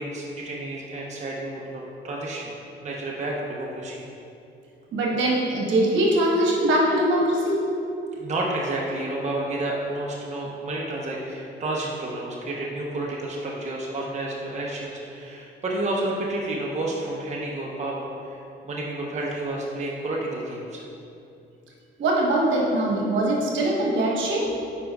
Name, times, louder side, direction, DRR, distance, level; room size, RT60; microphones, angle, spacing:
voice 1, 0.0-2.5 2.8-4.0 8.1-20.8, right 2 dB, 35° right, -3 dB, 0.8 m, -30 dB
voice 2, 4.9-7.6 22.0-24.4, right 1 dB, 75° right, -3 dB, 1.2 m, -22 dB
8.4 x 5.1 x 2.3 m, 2.7 s
cardioid pair, 90°, 20 cm